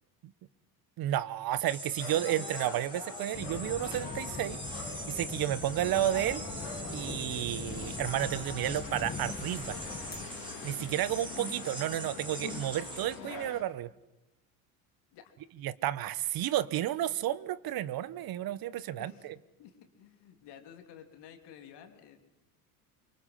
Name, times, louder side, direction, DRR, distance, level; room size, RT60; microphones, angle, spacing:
voice 1, 1.0-4.6 5.1-6.5 6.9-9.8 10.6-13.9 15.6-19.3, right 13 dB, 50° right, 18 dB, 1.1 m, -32 dB
sound 1, 1.7-13.2, right 1 dB, 10° right, 4.4 m, -43 dB
sound 2, 2.0-13.6, left 5 dB, 85° left, 3.9 m, -44 dB
sound 3, 3.3-10.3, left 4 dB, 20° left, 1.9 m, -42 dB
voice 2, 19.0-19.3 19.6-22.2, left 9 dB, 60° left, 6 dB, 3.4 m, -52 dB
24.5 x 23.5 x 5.7 m, 0.93 s
hypercardioid pair, 80°, 45 cm